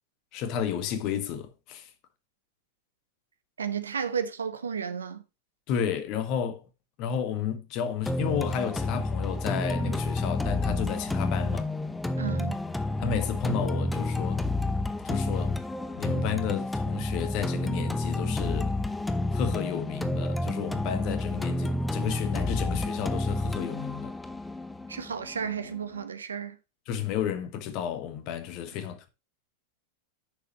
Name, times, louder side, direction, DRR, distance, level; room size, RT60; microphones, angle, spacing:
voice 1, 0.3-1.9 5.7-6.6 7.0-11.7 13.0-14.4 15.0-15.6 15.9-18.7 19.3-24.1 26.9-29.1, left 8 dB, 40° left, 1.5 m, -32 dB
voice 2, 3.6-5.2 12.2-12.6 24.9-26.6, right 7 dB, 70° right, 1.0 m, -33 dB
sound 1, 8.1-26.0, left 2 dB, 5° left, 0.8 m, -30 dB
9.9 x 6.9 x 3.0 m
figure-of-eight pair, 90°, 0 cm